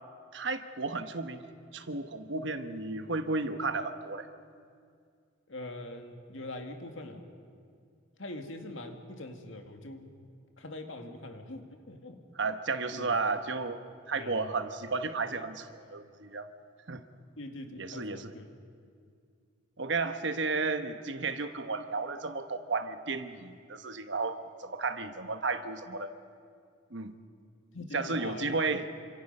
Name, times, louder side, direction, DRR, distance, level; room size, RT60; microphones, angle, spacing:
voice 1, 0.3-1.4 1.7-4.3 12.4-13.8 14.1-16.5 16.9-17.0 17.8-18.3 19.8-26.1 26.9-27.1 27.9-28.9, right 3 dB, 60° right, 9 dB, 1.1 m, -33 dB
voice 2, 5.5-7.3 8.2-10.1 10.6-12.2 12.9-13.2 14.1-14.5 17.4-18.5 27.7-28.5, left 1 dB, 70° left, 5 dB, 2.0 m, -43 dB
28.0 x 26.0 x 5.5 m, 2.3 s
head